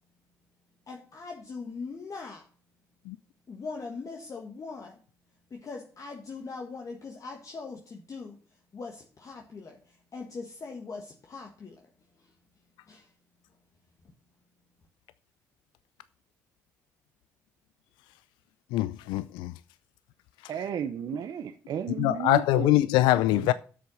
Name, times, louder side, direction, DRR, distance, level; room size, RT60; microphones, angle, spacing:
voice 1, 0.9-2.5 3.5-5.0 5.5-8.4 8.7-11.9 12.2-12.3 12.9-13.1, left 4 dB, 45° left, 1.6 m, -41 dB
voice 2, 18.7-19.5 22.0-23.5, left 15 dB, 80° left, 0.4 m, -23 dB
voice 3, 20.5-22.8 23.1-23.5, right 8 dB, 60° right, 0.8 m, -34 dB
7.8 x 6.6 x 6.4 m
hypercardioid pair, 55°, 8 cm